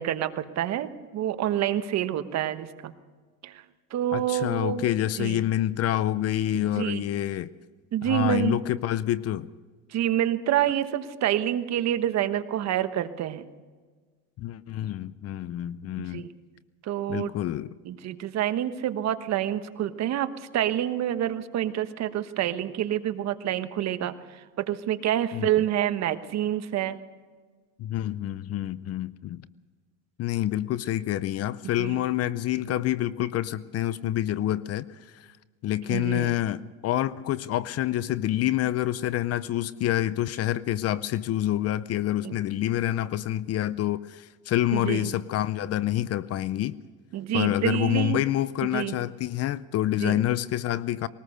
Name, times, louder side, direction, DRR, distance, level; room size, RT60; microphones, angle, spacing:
voice 1, 0.0-2.9 3.4-3.6 3.9-4.8 5.2-5.4 6.5-7.0 7.9-8.6 9.9-13.5 16.0-16.3 16.8-17.3 17.8-27.0 31.8-32.0 35.9-36.3 42.2-42.4 44.7-45.1 47.1-48.2 48.7-49.0 50.0-50.2, right 11 dB, 45° right, 11 dB, 1.2 m, -28 dB
voice 2, 4.1-7.5 8.0-9.5 14.4-16.3 17.1-17.7 25.3-25.5 27.8-29.4 30.2-35.3 35.6-46.8 47.3-51.1, left 13 dB, 40° left, 18 dB, 0.6 m, -27 dB
20.5 x 19.0 x 6.5 m, 1.4 s
cardioid pair, 125°, 37 cm